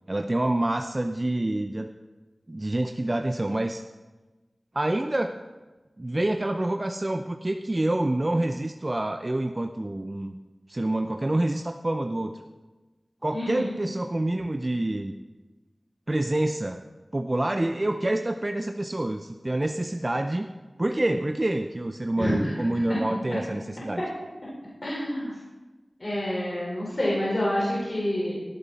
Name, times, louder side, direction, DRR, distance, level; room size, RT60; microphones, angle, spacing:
voice 1, 0.1-1.9 2.5-3.8 4.7-5.4 6.0-10.4 10.7-12.4 13.2-15.1 16.1-16.8 17.1-20.5 20.8-24.0, right 1 dB, 35° right, 6 dB, 0.6 m, -27 dB
voice 2, 13.3-13.7 22.2-22.5 24.8-25.4 26.0-28.3, left 1 dB, 50° left, -7 dB, 4.6 m, -27 dB
17.0 x 9.5 x 4.2 m, 1.2 s
wide cardioid pair, 60°, 0 cm